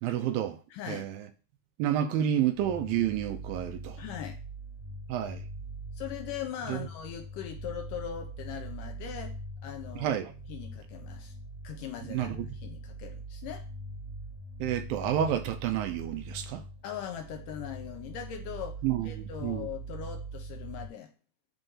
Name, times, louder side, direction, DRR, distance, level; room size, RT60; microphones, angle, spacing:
voice 1, 0.0-0.6 0.9-1.2 1.8-4.0 5.1-5.4 6.7-6.9 10.0-10.3 12.1-12.5 14.6-16.6 18.8-19.1 19.4-19.7, right 10 dB, 80° right, 2.4 m, -29 dB
voice 2, 0.7-1.1 4.0-4.4 5.9-10.2 10.5-11.3 11.6-13.7 16.8-21.1, left 9 dB, 75° left, 2.1 m, -40 dB
sound 1, 2.5-20.9, right 1 dB, 60° right, 0.8 m, -42 dB
8.9 x 3.1 x 5.6 m
omnidirectional pair, 4.3 m